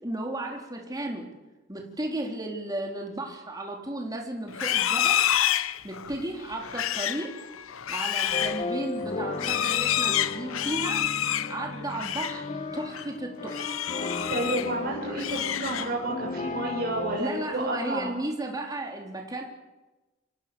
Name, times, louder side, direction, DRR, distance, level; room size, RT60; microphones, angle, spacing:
voice 1, 0.0-1.3 1.7-5.3 5.8-7.3 7.9-11.0 11.5-12.5 12.7-13.8 17.2-19.4, right 1 dB, 20° right, 1 dB, 3.7 m, -34 dB
Livestock farm animals working animals, 4.5-12.4 12.8-13.1 13.5-14.7 15.1-16.1, left 11 dB, 85° left, 0.9 m, -28 dB
sound 1, 8.3-17.2, left 3 dB, 35° left, 1.5 m, -35 dB
voice 2, 14.3-18.1, right 1 dB, 45° right, -2 dB, 6.8 m, -30 dB
27.5 x 26.5 x 7.0 m, 1.1 s
head